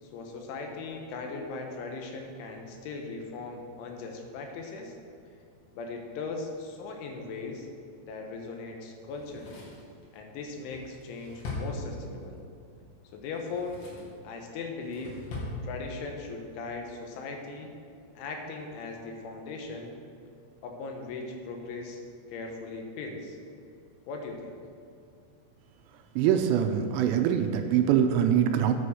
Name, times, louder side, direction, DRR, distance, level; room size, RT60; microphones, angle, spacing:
voice 1, 0.0-4.9 5.8-7.7 8.0-9.7 10.1-12.4 13.1-13.8 14.2-15.2 15.6-17.7 18.2-20.0 20.6-22.0 22.3-23.4 24.1-24.6, left 3 dB, 85° left, 2 dB, 3.7 m, -38 dB
Drawer open or close, 9.1-12.4 13.3-14.2 14.6-15.6 15.9-16.0, left 3 dB, 65° left, 4.0 m, -41 dB
voice 2, 26.2-28.7, right 9 dB, 80° right, 6 dB, 2.7 m, -23 dB
9.7 x 8.5 x 6.4 m, 2.5 s
omnidirectional pair, 5.3 m